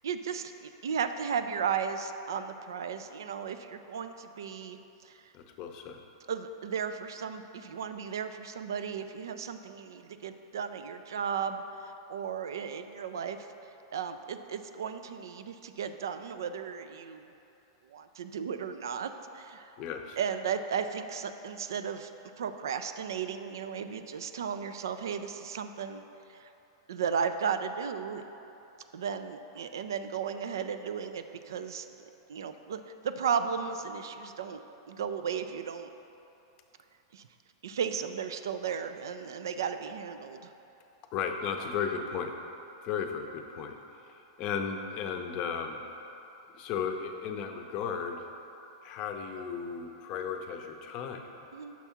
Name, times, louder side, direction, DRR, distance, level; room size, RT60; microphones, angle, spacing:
voice 1, 0.0-5.2 6.3-13.4 13.9-17.3 17.9-19.7 20.2-22.1 22.4-26.0 26.4-26.5 26.9-28.2 28.9-31.9 32.3-34.6 34.9-35.9 37.1-37.3 37.6-40.5 51.5-51.7, right 7 dB, 75° right, 9 dB, 0.3 m, -35 dB
voice 2, 5.3-6.0 19.8-20.2 41.1-42.3 42.8-43.8 44.0-45.8 46.5-48.3 48.8-51.5, left 6 dB, 45° left, 5 dB, 0.6 m, -35 dB
6.0 x 3.5 x 5.7 m, 2.9 s
hypercardioid pair, 110°, 2 cm